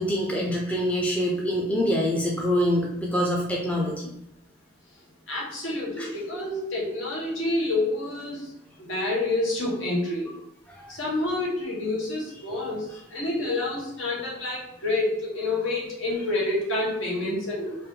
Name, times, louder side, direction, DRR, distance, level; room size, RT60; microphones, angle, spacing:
voice 1, 0.0-4.1 6.0-6.1 10.8-10.9, equal, 5° left, -3 dB, 0.5 m, -25 dB
voice 2, 5.3-8.5 8.8-10.3 10.9-17.8, left 2 dB, 80° left, -4 dB, 1.2 m, -28 dB
3.4 x 2.5 x 3.7 m, 0.81 s
head